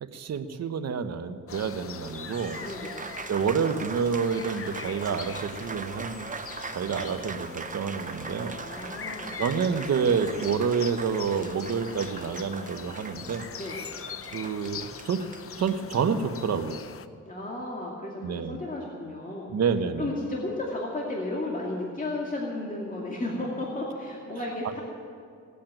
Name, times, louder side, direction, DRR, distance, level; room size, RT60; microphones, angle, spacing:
voice 1, 0.0-2.6 3.3-6.3 6.7-8.6 9.4-13.4 14.3-15.2 15.6-16.8 18.2-18.6 19.5-20.1, right 6 dB, 60° right, 8 dB, 1.1 m, -28 dB
sound 1, 1.5-17.1, left 7 dB, 50° left, 0.7 m, -42 dB
Applause, 1.9-16.6, right 5 dB, 25° right, 0.7 m, -41 dB
voice 2, 8.5-9.4 13.6-13.8 17.3-19.5 20.0-24.8, left 2 dB, 25° left, -3 dB, 2.4 m, -33 dB
18.0 x 8.5 x 9.0 m, 2.3 s
cardioid pair, 90°, 29 cm